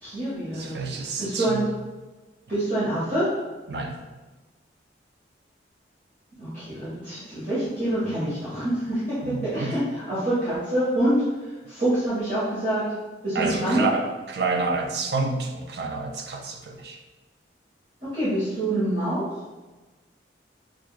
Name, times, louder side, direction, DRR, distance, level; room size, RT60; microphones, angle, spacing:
voice 1, 0.0-1.7 2.5-3.3 6.4-9.8 10.1-11.2 11.7-12.9 13.2-13.9 18.0-19.2, right 1 dB, 40° right, -13 dB, 1.4 m, -26 dB
voice 2, 0.5-1.6 3.7-4.0 9.2-9.8 13.3-17.0, right 3 dB, 65° right, 3 dB, 0.5 m, -29 dB
6.0 x 2.4 x 2.4 m, 1.2 s
head